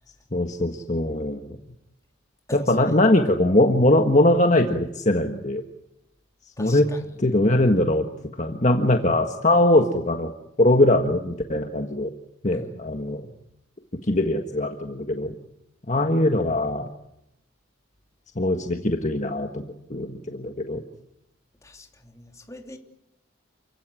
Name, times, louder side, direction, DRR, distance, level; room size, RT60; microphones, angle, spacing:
voice 1, 0.3-1.6 2.5-5.6 6.6-6.9 7.2-8.1 8.4-10.3 10.6-12.1 12.4-13.2 14.1-15.3 15.9-16.9 18.3-19.6 19.9-20.8, left 1 dB, 35° left, 1.6 m, -21 dB
voice 2, 2.5-3.0 6.6-7.1 12.5-12.7 21.6-22.8, left 1 dB, 15° left, 3.0 m, -41 dB
29.0 x 17.0 x 9.9 m
head